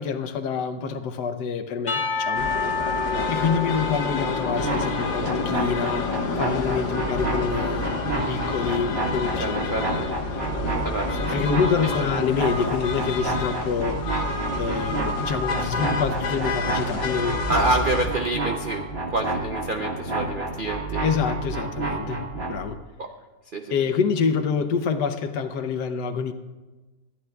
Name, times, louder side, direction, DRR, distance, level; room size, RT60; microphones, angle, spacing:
voice 1, 0.0-2.5 3.3-9.7 11.3-17.4 21.0-22.8 23.7-26.3, left 6 dB, 70° left, 9 dB, 1.3 m, -27 dB
Percussion / Church bell, 1.9-5.5, left 3 dB, 25° left, 1.3 m, -29 dB
sound 1, 2.3-18.1, left 4 dB, 90° left, 2.1 m, -29 dB
voice 2, 3.0-3.4 9.3-10.0 10.8-11.3 14.5-14.9 17.5-21.0 23.0-23.1 23.5-23.7, right 2 dB, 80° right, 4 dB, 0.4 m, -28 dB
sound 2, 4.5-22.6, right 3 dB, 35° right, 1.7 m, -30 dB
20.0 x 13.0 x 2.3 m, 1.2 s
omnidirectional pair, 2.0 m